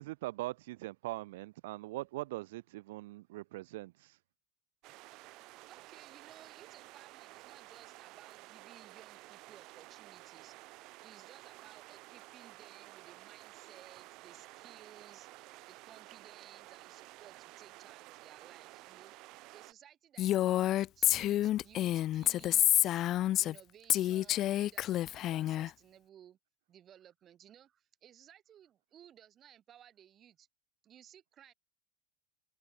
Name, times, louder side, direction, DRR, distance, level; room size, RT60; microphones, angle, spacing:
voice 1, 0.0-4.2, right 18 dB, 75° right, 0.4 m, -41 dB
sound 1, 4.8-19.7, right 21 dB, 50° right, 3.2 m, -53 dB
voice 2, 5.5-10.6 10.8-15.3 15.7-23.1 23.4-26.4 26.7-30.5 30.8-31.5, right 10 dB, 30° right, 3.9 m, -59 dB
Female speech woman speaking, 20.2-23.6 23.9-25.7, left 13 dB, 40° left, 0.4 m, -29 dB
supercardioid pair, 140°, 0 cm